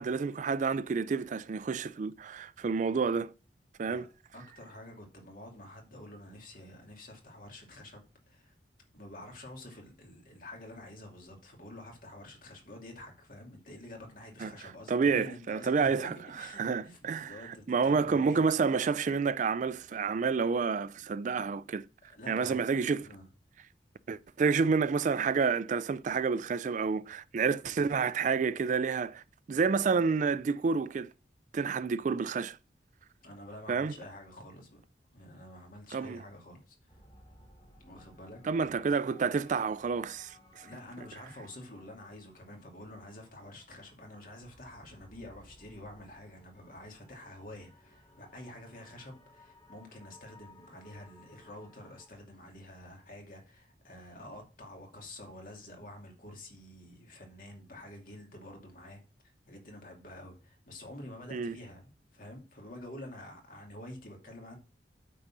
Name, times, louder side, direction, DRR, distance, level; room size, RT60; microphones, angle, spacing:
voice 1, 0.0-3.3 3.8-4.1 14.4-14.5 14.9-16.1 16.6-17.3 17.7-21.8 22.3-23.0 24.1-29.2 29.5-31.1 31.5-32.6 33.7-33.9 35.9-36.2 38.4-40.7 61.3-61.6, right 5 dB, 45° right, 0.3 m, -29 dB
voice 2, 4.3-8.0 8.3-8.5 8.9-18.5 22.1-22.6 23.0-23.3 33.2-34.8 35.1-37.0 37.8-38.5 40.6-64.6, left 1 dB, 50° left, 2.5 m, -48 dB
sound 1, 36.9-52.1, left 2 dB, 25° left, 2.8 m, -60 dB
8.9 x 3.9 x 6.0 m
head